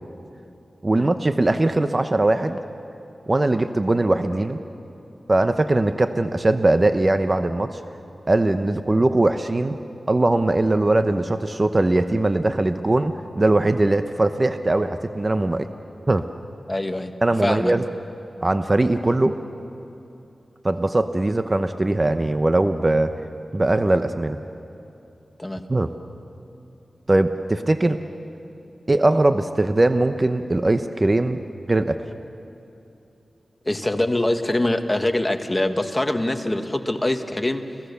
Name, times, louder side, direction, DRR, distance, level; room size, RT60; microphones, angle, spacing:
voice 1, 0.8-2.6 3.3-4.6 5.3-7.8 8.3-9.8 10.1-15.7 16.1-16.2 17.2-17.8 18.4-19.4 20.6-23.1 23.5-24.4 25.7-25.9 27.1-28.0 28.9-31.4 31.7-32.0, right 2 dB, 35° right, 9 dB, 0.9 m, -20 dB
voice 2, 16.7-17.1 17.4-17.7 25.4-25.6 33.6-37.6, left 1 dB, 25° left, 6 dB, 1.6 m, -23 dB
30.0 x 17.5 x 6.9 m, 2.9 s
cardioid pair, 45°, 0 cm